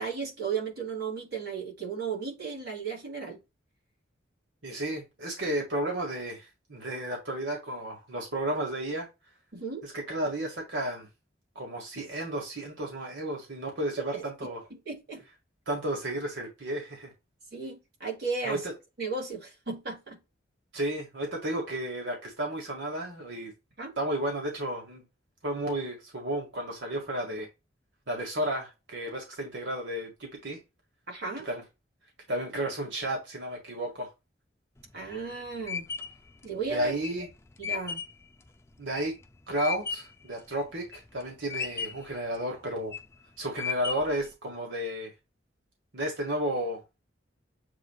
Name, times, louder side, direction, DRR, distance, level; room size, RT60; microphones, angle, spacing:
voice 1, 0.0-3.4 9.5-9.8 14.1-14.2 14.7-15.2 17.5-18.6 19.0-20.2 23.8-23.9 31.1-31.5 34.9-35.9 36.4-37.0 37.6-38.0, right 5 dB, 60° right, 2.9 m, -35 dB
voice 2, 4.6-9.1 9.8-11.1 11.6-14.6 15.7-17.1 18.4-18.7 20.7-23.5 24.0-25.0 25.4-27.5 28.1-30.6 31.4-31.6 32.3-34.1 36.7-37.3 38.8-39.1 39.5-43.0 43.4-45.1 45.9-46.8, right 1 dB, 80° right, 1.9 m, -32 dB
sound 1, 34.8-40.2 40.7-41.2 41.5-42.2 42.7-43.1 43.6-44.3, left 6 dB, 15° left, 0.4 m, -35 dB
7.5 x 3.0 x 2.3 m
head